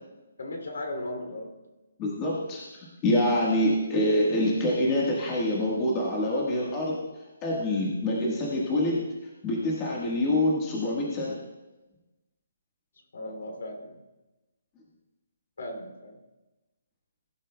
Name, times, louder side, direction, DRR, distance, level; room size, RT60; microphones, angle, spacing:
voice 1, 0.4-1.7 13.1-14.0 15.6-16.2, left 1 dB, 65° left, 4 dB, 2.8 m, -37 dB
voice 2, 2.0-7.0 7.4-9.0 9.4-11.4, left 1 dB, 15° left, -4 dB, 1.5 m, -26 dB
18.5 x 12.0 x 2.3 m, 1.1 s
hypercardioid pair, 180°, 0 cm